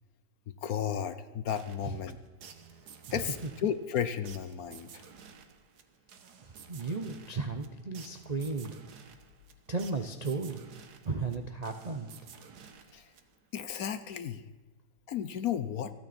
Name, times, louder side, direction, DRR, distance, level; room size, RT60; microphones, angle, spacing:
voice 1, 0.6-2.2 3.1-5.0 12.9-13.1 13.5-14.4 15.1-15.9, left 9 dB, 65° left, 12 dB, 1.0 m, -33 dB
sound 1, 1.5-13.6, right 6 dB, 65° right, 1.6 m, -53 dB
voice 2, 3.1-3.5 6.4-8.7 9.7-10.6 11.0-12.1, right 4 dB, 45° right, 5 dB, 0.5 m, -35 dB
27.5 x 9.4 x 4.2 m, 1.2 s
omnidirectional pair, 1.9 m